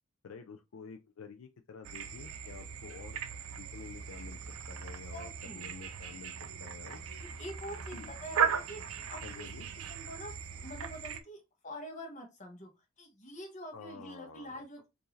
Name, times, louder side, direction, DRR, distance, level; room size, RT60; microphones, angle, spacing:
voice 1, 0.2-3.2 3.6-4.4 4.7-6.3 6.6-7.0 7.9-8.1 9.2-9.7 13.7-14.6, left 5 dB, 70° left, 0.4 m, -49 dB
sound 1, 1.8-11.2, right 7 dB, 90° right, 0.5 m, -38 dB
voice 2, 4.8-5.7 7.2-9.4 9.7-12.7 13.0-14.9, equal, 35° left, 1.1 m, -46 dB
4.5 x 2.7 x 3.1 m
head